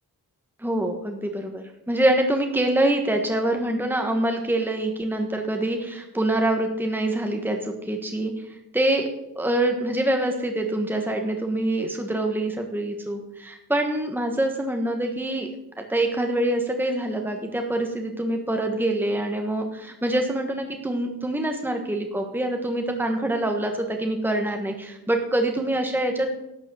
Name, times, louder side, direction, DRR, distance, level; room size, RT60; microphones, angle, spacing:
voice 1, 0.6-9.1 9.3-15.5 15.8-26.3, right 1 dB, 5° right, 3 dB, 1.4 m, -25 dB
11.5 x 6.1 x 8.3 m, 0.89 s
wide cardioid pair, 75°, 37 cm